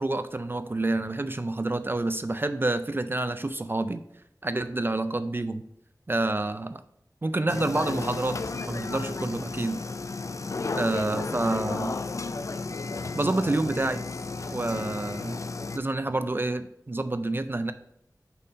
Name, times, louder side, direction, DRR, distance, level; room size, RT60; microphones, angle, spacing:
voice 1, 0.0-4.0 4.4-5.6 6.1-6.8 7.2-8.4 8.7-9.8 10.7-12.0 13.1-14.0 14.5-15.4 15.7-17.7, right 2 dB, 30° right, 11 dB, 0.3 m, -28 dB
sound 1, 7.5-15.8, left 3 dB, 50° left, 0.3 m, -33 dB
5.4 x 4.1 x 4.9 m, 0.75 s
wide cardioid pair, 60°, 7 cm